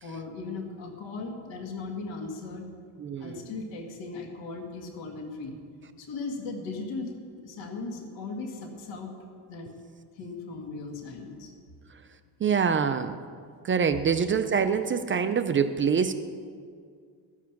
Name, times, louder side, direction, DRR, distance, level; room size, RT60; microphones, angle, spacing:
voice 1, 0.0-2.7 3.2-5.6 6.0-9.2 9.5-9.7 10.2-11.5, left 3 dB, 80° left, 3 dB, 1.8 m, -37 dB
voice 2, 3.0-3.4 12.4-13.2 13.6-16.1, right 6 dB, 30° right, 10 dB, 0.4 m, -25 dB
14.0 x 7.3 x 5.9 m, 2.1 s
cardioid pair, 120°, 44 cm